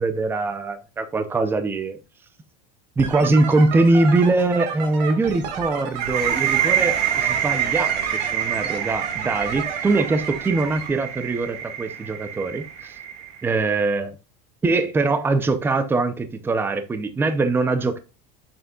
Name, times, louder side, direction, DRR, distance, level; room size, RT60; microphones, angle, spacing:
voice 1, 0.0-2.0 3.0-13.0 13.4-14.1 14.6-18.0, right 3 dB, 10° right, 0.6 m, -22 dB
sound 1, 3.0-10.9, right 6 dB, 90° right, 1.7 m, -33 dB
sound 2, 6.0-13.5, right 10 dB, 65° right, 1.9 m, -26 dB
6.9 x 6.4 x 2.3 m
cardioid pair, 150°, 21 cm